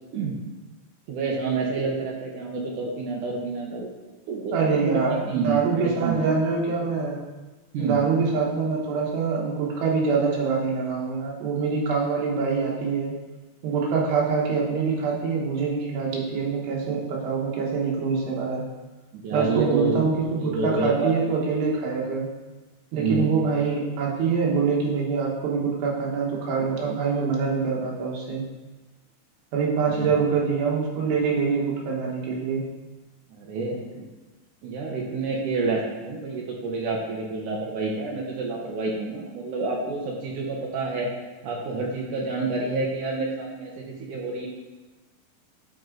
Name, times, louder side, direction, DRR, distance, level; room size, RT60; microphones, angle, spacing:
voice 1, 1.1-3.9 4.3-5.0 5.3-6.2 7.7-8.0 19.1-20.0 20.4-21.4 22.9-23.3 30.0-30.1 33.3-34.1 34.6-41.1 41.4-44.5, right 3 dB, 70° right, -2 dB, 2.0 m, -28 dB
voice 2, 4.5-7.2 7.8-13.1 13.6-18.6 19.3-22.3 22.9-28.5 29.5-32.7, right 5 dB, 90° right, -3 dB, 3.6 m, -25 dB
10.5 x 4.6 x 3.9 m, 1.2 s
omnidirectional pair, 4.7 m